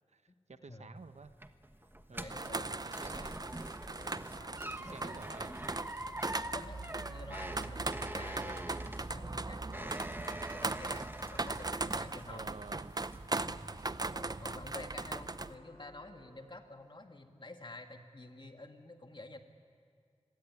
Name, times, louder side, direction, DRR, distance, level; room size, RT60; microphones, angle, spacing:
voice 1, 0.0-1.3 2.1-3.4 4.8-5.6 12.3-13.0, right 4 dB, 75° right, 10 dB, 1.0 m, -51 dB
sound 1, 1.0-12.5 12.9-13.4 13.8-13.9, right 1 dB, 20° right, 1.4 m, -45 dB
voice 2, 1.8-3.7 4.0-5.5 6.0-12.5 13.4-19.4, left 2 dB, 45° left, 5 dB, 2.1 m, -50 dB
sound 2, 2.3-15.6, right 3 dB, 35° right, 0.7 m, -39 dB
sound 3, 6.7-16.5, left 1 dB, 75° left, 7.4 m, -63 dB
25.0 x 17.0 x 9.8 m, 2.3 s
wide cardioid pair, 50°, 12 cm